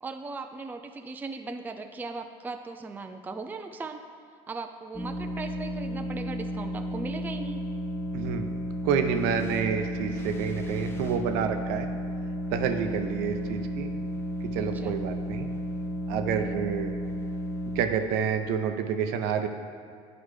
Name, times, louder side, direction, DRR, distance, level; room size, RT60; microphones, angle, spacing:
voice 1, 0.0-4.0 4.5-7.6 14.7-15.0, right 3 dB, 10° right, 6 dB, 0.4 m, -38 dB
sound 1, 4.9-17.8, equal, 15° left, 0.7 m, -33 dB
voice 2, 8.1-8.5 8.8-11.9 12.5-13.9 14.5-15.5 16.1-16.9 17.7-19.5, right 7 dB, 75° right, 6 dB, 0.6 m, -28 dB
9.9 x 4.9 x 3.2 m, 2.2 s
supercardioid pair, 80°, 16 cm